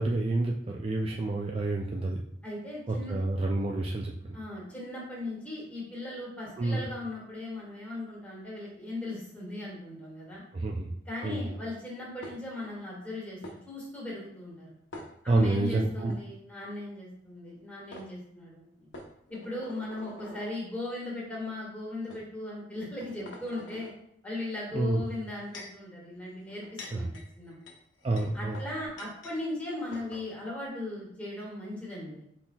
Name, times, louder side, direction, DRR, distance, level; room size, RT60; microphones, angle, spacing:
voice 1, 0.0-2.2 2.9-4.1 6.6-6.8 10.5-10.9 11.2-11.4 15.3-16.1 24.7-25.0 26.9-27.1 28.0-28.6, right 2 dB, 30° right, -1 dB, 0.3 m, -28 dB
voice 2, 2.4-3.2 4.3-10.4 11.0-13.4 13.6-14.7 15.2-18.9 19.3-23.9 24.2-27.5 28.3-32.2, left 2 dB, 10° left, -5 dB, 1.6 m, -38 dB
sound 1, 12.2-12.7 13.4-13.6 14.9-15.6 16.0-16.2 17.5-17.6 17.9-18.1 18.9-20.5 21.3-21.5 22.1-22.2 22.8-23.9 25.0-25.8 26.5-29.4 29.6-29.7 29.9-30.3, left 2 dB, 85° left, 0.9 m, -46 dB
5.7 x 4.1 x 2.3 m, 0.70 s
head